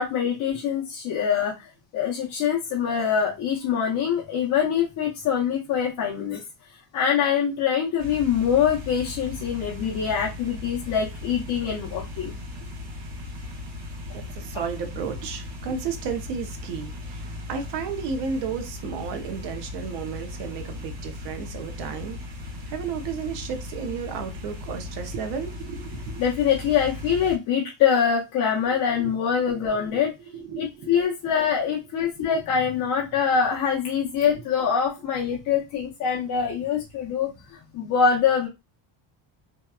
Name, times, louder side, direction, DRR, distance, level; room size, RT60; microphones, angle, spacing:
voice 1, 0.0-6.4 6.9-12.3 26.2-30.1 30.6-38.5, left 7 dB, 45° left, 0.6 m, -24 dB
sound 1, 8.0-27.4, left 2 dB, 80° right, 1.3 m, -37 dB
voice 2, 14.1-22.2 22.7-26.2 28.9-29.1 29.5-30.0 30.3-30.9, right 6 dB, 60° right, 0.7 m, -33 dB
2.8 x 2.2 x 2.3 m
cardioid pair, 165°, 47 cm